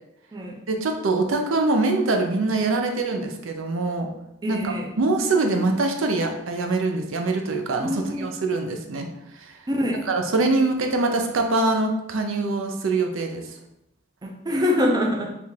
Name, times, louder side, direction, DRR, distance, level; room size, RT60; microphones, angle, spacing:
voice 1, 0.7-4.1 4.5-9.1 9.4-9.5 10.1-13.4, right 3 dB, 75° right, 4 dB, 0.5 m, -24 dB
voice 2, 4.4-4.9 7.8-8.3 9.7-10.0 14.2-15.4, left 1 dB, 20° right, 1 dB, 0.4 m, -24 dB
3.4 x 2.4 x 4.3 m, 0.86 s
head